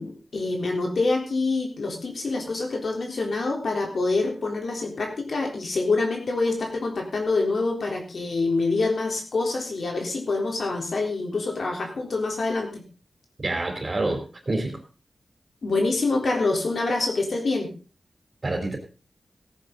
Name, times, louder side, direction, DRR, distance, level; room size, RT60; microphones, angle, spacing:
voice 1, 0.0-12.8 15.6-17.7, left 3 dB, 70° left, 1 dB, 3.6 m, -26 dB
voice 2, 13.4-14.8 18.4-18.8, right 2 dB, 40° right, 4 dB, 3.5 m, -27 dB
17.0 x 10.0 x 3.9 m, 0.35 s
wide cardioid pair, 90°, 0 cm